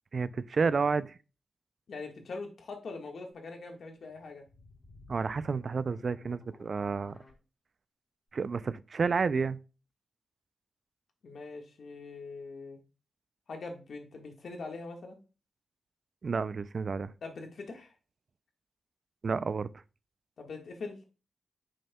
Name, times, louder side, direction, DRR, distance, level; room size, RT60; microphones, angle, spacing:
voice 1, 0.1-1.2 5.1-7.2 8.3-9.6 16.2-17.1 19.2-19.7, right 5 dB, 55° right, 0.3 m, -30 dB
voice 2, 1.9-4.4 11.2-12.8 13.5-15.2 17.2-17.9 20.4-21.0, left 3 dB, 70° left, 1.5 m, -42 dB
sound 1, 4.0-7.3, left 2 dB, 30° left, 3.9 m, -55 dB
8.6 x 6.4 x 2.2 m
cardioid pair, 70°, 0 cm